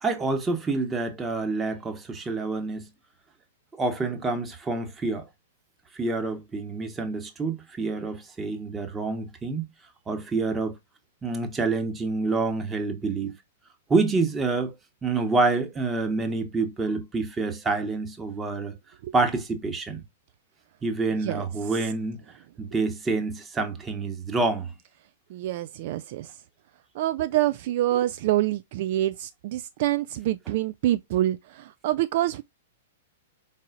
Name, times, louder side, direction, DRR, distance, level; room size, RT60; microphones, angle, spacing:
voice 1, 0.0-2.9 3.7-5.2 5.9-9.7 10.1-10.8 11.2-13.3 13.9-14.7 15.0-18.7 19.1-20.0 20.8-22.2 22.6-24.7 30.5-30.6, right 3 dB, 15° right, 1.2 m, -27 dB
voice 2, 25.3-26.3 27.0-32.4, right 14 dB, 50° right, 0.3 m, -26 dB
4.8 x 4.1 x 2.4 m
figure-of-eight pair, 105°, 0 cm